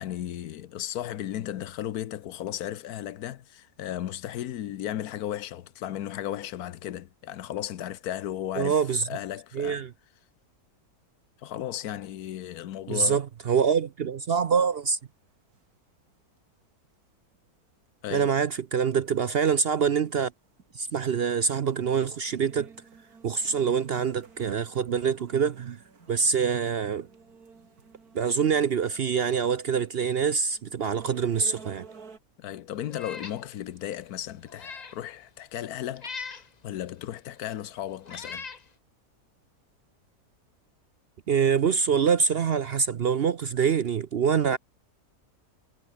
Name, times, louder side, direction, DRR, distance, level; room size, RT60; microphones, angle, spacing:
voice 1, 0.0-8.8 9.1-9.8 11.4-13.2 18.0-18.3 32.4-38.4, left 12 dB, 80° left, 1.3 m, -35 dB
voice 2, 8.6-9.1 9.5-9.9 12.9-15.0 18.1-20.3 20.7-22.7 23.2-25.8 26.1-27.1 28.1-31.8 41.3-44.6, right 6 dB, 55° right, 0.7 m, -25 dB
sound 1, 14.4-15.2 15.5-15.6 16.1-16.2 16.6-16.7 16.8-16.9 17.3-17.5 18.0-18.1 18.4-18.8 19.3-19.4 20.0-20.3 20.6-21.1 21.5-21.6 21.8-32.2, right 5 dB, 80° right, 2.9 m, -52 dB
Meow, 32.9-33.4 33.8-33.9 34.4-35.0 36.0-36.5 37.4-37.5 38.0-38.6, left 5 dB, 30° left, 1.0 m, -40 dB
omnidirectional pair, 1.6 m